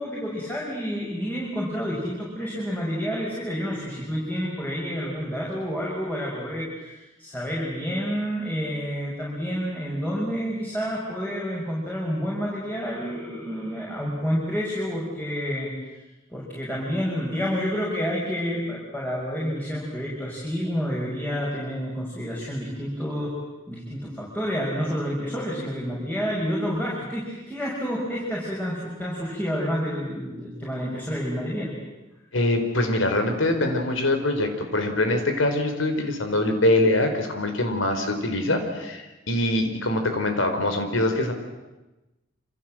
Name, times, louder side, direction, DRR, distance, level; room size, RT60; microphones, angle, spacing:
voice 1, 0.0-15.7 16.3-23.3 23.7-31.7, equal, 10° left, -4 dB, 6.1 m, -29 dB
voice 2, 32.3-41.3, left 1 dB, 85° left, 6 dB, 4.6 m, -23 dB
27.5 x 26.5 x 7.7 m, 1.1 s
head